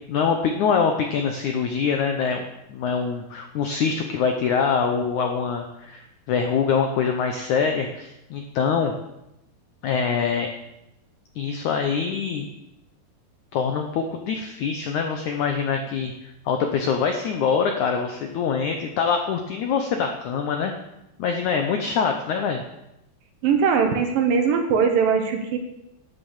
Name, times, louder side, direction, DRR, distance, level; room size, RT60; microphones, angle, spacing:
voice 1, 0.1-2.4 2.7-8.9 9.8-10.5 11.3-12.5 13.5-20.7 21.2-22.6, left 6 dB, 75° left, 4 dB, 1.7 m, -24 dB
voice 2, 23.4-25.6, right 6 dB, 65° right, 5 dB, 2.6 m, -20 dB
11.0 x 8.7 x 7.3 m, 0.88 s
omnidirectional pair, 4.6 m